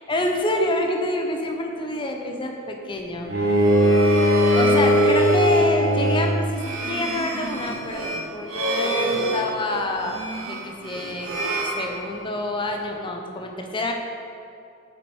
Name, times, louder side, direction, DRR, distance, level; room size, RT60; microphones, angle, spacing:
voice 1, 0.1-3.3 4.6-13.9, left 1 dB, 25° left, 3 dB, 0.6 m, -27 dB
Bowed string instrument, 3.3-6.5, equal, 50° right, 1.0 m, -18 dB
sound 1, 3.5-12.5, right 1 dB, 85° right, 0.8 m, -29 dB
7.2 x 4.8 x 4.5 m, 2.6 s
head